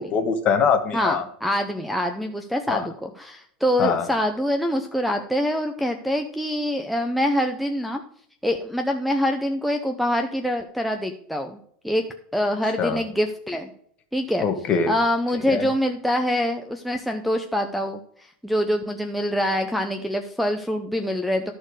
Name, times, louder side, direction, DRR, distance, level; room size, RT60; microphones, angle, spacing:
voice 1, 0.0-1.2 2.7-2.9 3.8-4.1 12.8-13.0 14.4-14.9 15.5-15.7, left 6 dB, 30° left, 6 dB, 1.3 m, -23 dB
voice 2, 0.9-8.0 8.4-11.6 11.8-12.0 12.3-13.7 14.1-14.5 14.9-21.5, equal, ahead, 3 dB, 0.5 m, -25 dB
13.0 x 4.4 x 4.8 m, 0.64 s
supercardioid pair, 150°, 5 cm